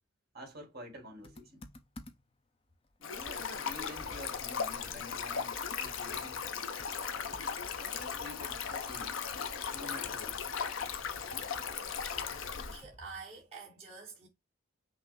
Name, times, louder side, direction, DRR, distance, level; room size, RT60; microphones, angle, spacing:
voice 1, 0.3-1.6 3.0-6.4 7.8-9.2 9.7-10.4, left 1 dB, 50° right, 1.8 m, -48 dB
Computer keyboard, 1.2-2.4 2.8-2.9 3.2-13.1, left 1 dB, 25° left, 0.6 m, -54 dB
Stream, 3.0-12.8, left 6 dB, 70° left, 0.7 m, -37 dB
voice 2, 12.3-14.3, right 5 dB, 30° right, 1.6 m, -48 dB
5.9 x 2.0 x 4.0 m
head